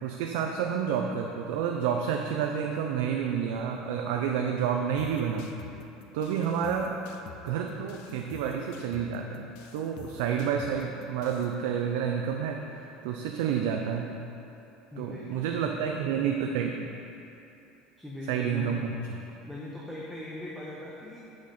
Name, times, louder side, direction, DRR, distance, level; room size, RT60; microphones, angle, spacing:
voice 1, 0.0-5.5 6.1-7.0 7.4-14.1 15.0-16.9 18.3-19.2, right 7 dB, 80° right, 2 dB, 0.5 m, -29 dB
sound 1, 5.0-11.6, left 8 dB, 70° left, 0.5 m, -49 dB
voice 2, 14.9-16.1 18.0-18.8 19.5-21.2, left 1 dB, ahead, -6 dB, 0.8 m, -40 dB
7.4 x 6.2 x 4.2 m, 2.8 s
cardioid pair, 150°, 0 cm